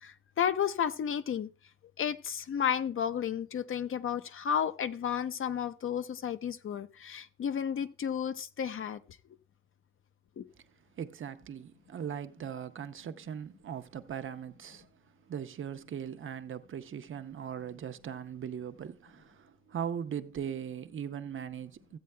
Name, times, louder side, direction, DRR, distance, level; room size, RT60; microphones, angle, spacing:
voice 1, 0.0-1.5 2.0-9.0 10.4-10.5, left 8 dB, 80° left, 0.6 m, -32 dB
voice 2, 11.0-14.9 15.3-22.0, right 8 dB, 75° right, 0.6 m, -39 dB
14.5 x 8.5 x 2.2 m
wide cardioid pair, 180°, 21 cm